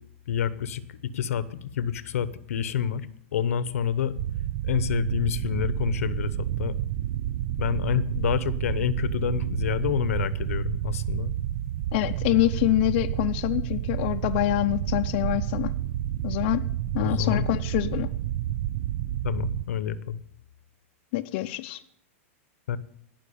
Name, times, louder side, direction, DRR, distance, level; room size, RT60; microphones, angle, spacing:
voice 1, 0.3-0.8 1.1-3.1 3.3-4.1 4.7-6.7 7.6-11.3 17.0-17.5 19.2-20.2 22.7-22.8, left 8 dB, 85° left, 15 dB, 1.0 m, -28 dB
sound 1, 4.2-19.6, right 12 dB, 50° right, 0.4 m, -30 dB
voice 2, 11.9-15.7 16.2-16.7 16.9-18.1 21.1-21.8, left 17 dB, 45° left, 6 dB, 0.7 m, -25 dB
17.0 x 5.9 x 8.6 m, 0.67 s
supercardioid pair, 150°, 8 cm